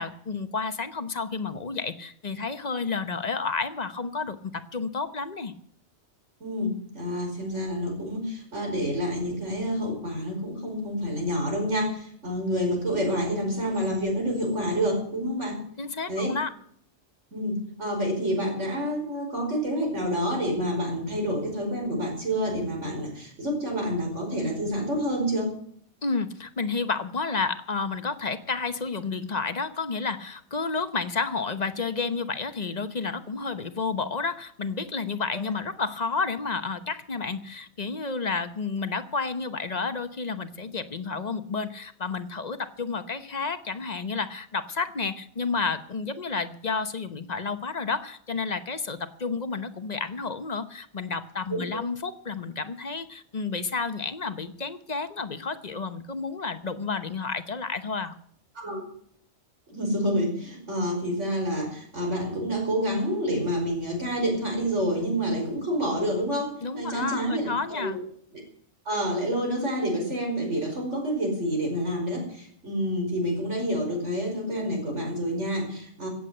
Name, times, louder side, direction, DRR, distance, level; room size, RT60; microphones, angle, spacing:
voice 1, 0.0-5.5 15.8-16.5 26.0-58.2 66.6-68.0, left 4 dB, 40° left, 10 dB, 1.0 m, -31 dB
voice 2, 6.4-15.6 16.1-16.3 17.3-25.6 51.5-51.6 58.6-58.8 59.7-68.0 68.3-68.4 68.9-76.1, equal, 90° right, 2 dB, 5.4 m, -28 dB
16.5 x 8.1 x 7.9 m, 0.64 s
omnidirectional pair, 1.2 m